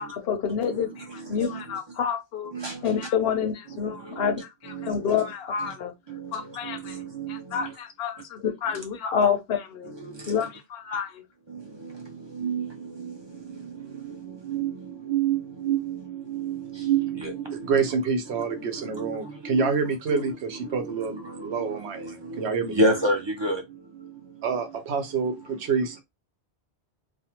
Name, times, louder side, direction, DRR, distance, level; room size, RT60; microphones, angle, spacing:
voice 1, 0.0-2.5 2.8-5.9 6.3-7.0 7.3-9.9 10.3-11.2, left 7 dB, 70° left, 0.8 m, -28 dB
voice 2, 1.1-1.6 2.5-3.1 3.8-5.2 5.6-5.7 6.1-7.7 8.7-8.8 9.9-10.3 11.5-13.1 13.7-18.0 18.5-19.8 20.1-20.3 20.6-23.6, right 4 dB, 35° right, 0.5 m, -31 dB
voice 3, 17.7-22.8 24.4-26.0, right 5 dB, 80° right, 1.0 m, -27 dB
2.5 x 2.3 x 2.8 m
omnidirectional pair, 1.1 m